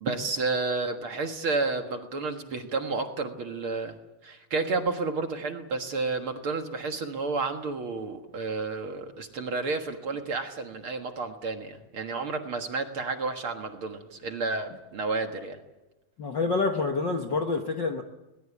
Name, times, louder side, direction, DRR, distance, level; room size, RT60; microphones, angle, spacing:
voice 1, 0.0-4.0 4.2-15.6, right 3 dB, 50° right, 5 dB, 2.1 m, -31 dB
voice 2, 16.2-18.0, left 3 dB, 50° left, 4 dB, 1.4 m, -27 dB
21.5 x 20.0 x 8.3 m, 1.0 s
omnidirectional pair, 3.6 m